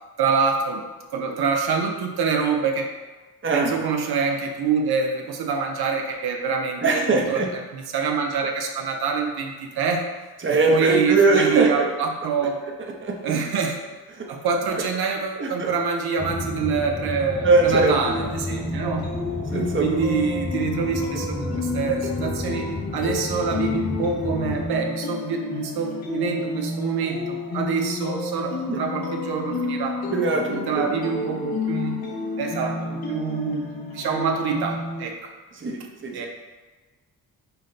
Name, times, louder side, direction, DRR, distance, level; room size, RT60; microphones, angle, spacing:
voice 1, 0.2-0.8 1.1-2.9 3.5-7.4 7.7-10.0 10.5-12.6 13.2-13.8 14.3-19.1 19.8-30.0 30.7-32.0 32.4-33.7 33.9-35.3 36.1-36.3, right 5 dB, 85° right, 2 dB, 0.6 m, -25 dB
voice 2, 3.4-3.7 6.8-7.5 10.4-11.9 13.0-13.3 14.2-14.3 14.7-14.8 15.4-15.7 17.4-18.2 19.5-20.0 28.7-28.8 30.1-30.9 31.2-31.3 35.5-36.2, right 2 dB, 30° right, 1 dB, 0.7 m, -21 dB
sound 1, 16.2-24.7, left 1 dB, 10° left, 0.4 m, -32 dB
sound 2, 18.0-35.0, left 3 dB, 70° left, 0.9 m, -31 dB
5.5 x 2.1 x 3.8 m, 1.3 s
cardioid pair, 75°, 37 cm